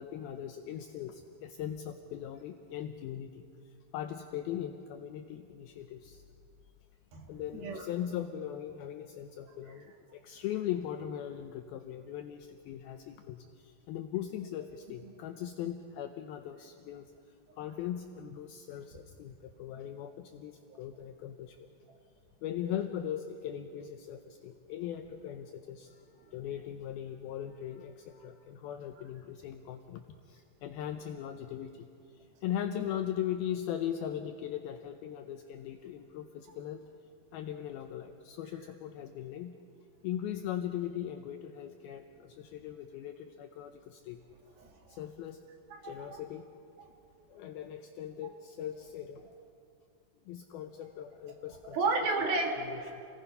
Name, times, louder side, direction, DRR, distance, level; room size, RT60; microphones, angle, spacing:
voice 1, 0.0-3.5 3.9-6.2 7.3-17.1 17.6-21.7 22.4-31.9 32.1-36.8 37.3-39.6 40.0-44.2 44.9-45.4 45.8-46.4 47.3-49.3 50.3-51.8 52.7-53.0, left 10 dB, 80° left, 6 dB, 2.3 m, -39 dB
voice 2, 7.1-7.9 9.4-9.5 32.8-32.9 44.6-45.0 45.7-46.2 48.2-48.3 51.7-53.0, right 3 dB, 65° right, 2 dB, 3.5 m, -33 dB
28.5 x 18.5 x 5.6 m, 2.4 s
omnidirectional pair, 5.0 m